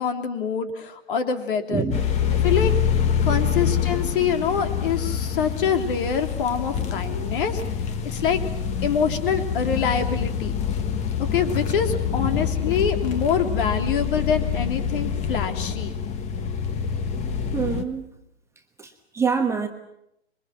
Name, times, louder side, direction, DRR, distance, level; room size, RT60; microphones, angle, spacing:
voice 1, 0.0-1.9 2.4-2.7 3.2-7.6 8.0-8.4 8.8-10.5 11.3-15.9, left 7 dB, 50° left, 7 dB, 3.3 m, -25 dB
voice 2, 1.7-2.0 2.3-2.5 3.3-3.4 17.5-18.1 18.8-19.7, right 5 dB, 10° right, 4 dB, 1.2 m, -26 dB
sound 1, 1.9-17.8, left 7 dB, 20° left, 1.5 m, -26 dB
26.0 x 22.5 x 7.6 m, 0.80 s
hypercardioid pair, 130°, 34 cm